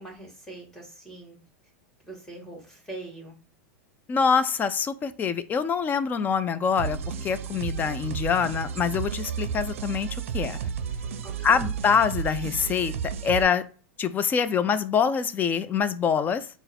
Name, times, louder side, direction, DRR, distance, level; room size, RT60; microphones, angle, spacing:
voice 1, 0.0-1.4 2.0-3.4 11.2-11.7, right 2 dB, 5° left, 0 dB, 1.9 m, -42 dB
voice 2, 4.1-10.1 10.3-10.7 11.4-12.9 13.2-13.6 14.0-16.5, left 6 dB, 25° left, 13 dB, 0.4 m, -25 dB
sound 1, 6.8-13.4, right 7 dB, 75° right, 0.5 m, -32 dB
3.9 x 2.1 x 4.2 m, 0.38 s
hypercardioid pair, 110°, 7 cm